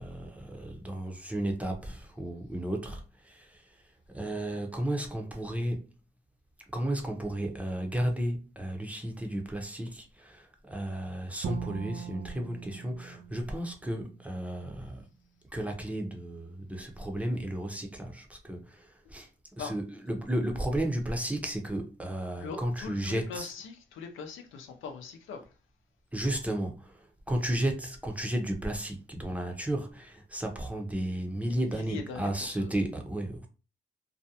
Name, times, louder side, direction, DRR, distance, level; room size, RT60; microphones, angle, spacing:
voice 1, 0.0-5.9 6.7-15.1 15.5-19.3 19.6-23.5 26.1-33.5, right 1 dB, 5° right, 0.6 m, -33 dB
Bowed string instrument, 11.4-14.6, right 9 dB, 50° right, 0.4 m, -41 dB
voice 2, 22.4-25.4 31.5-32.9, left 5 dB, 80° left, 0.6 m, -41 dB
2.5 x 2.1 x 2.7 m
cardioid pair, 90°, 20 cm